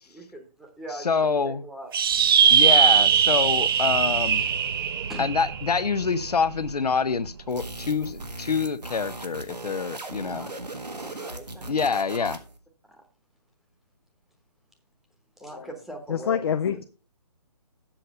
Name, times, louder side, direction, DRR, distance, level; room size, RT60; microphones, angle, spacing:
voice 1, 0.1-1.2 1.4-1.9 2.2-2.6 2.9-3.2 4.9-5.3 10.2-10.5 11.0-11.7 15.4-16.8, right 1 dB, ahead, 1.0 m, -41 dB
voice 2, 1.0-1.6 2.5-4.4 5.2-10.5 11.7-12.4, left 5 dB, 75° left, 0.7 m, -26 dB
sound 1, 1.9-6.7, right 8 dB, 35° right, 0.6 m, -21 dB
sound 2, 7.5-12.6, right 2 dB, 90° right, 1.5 m, -38 dB
voice 3, 16.1-16.8, left 8 dB, 40° left, 0.4 m, -26 dB
7.5 x 6.6 x 5.3 m
figure-of-eight pair, 145°, 20 cm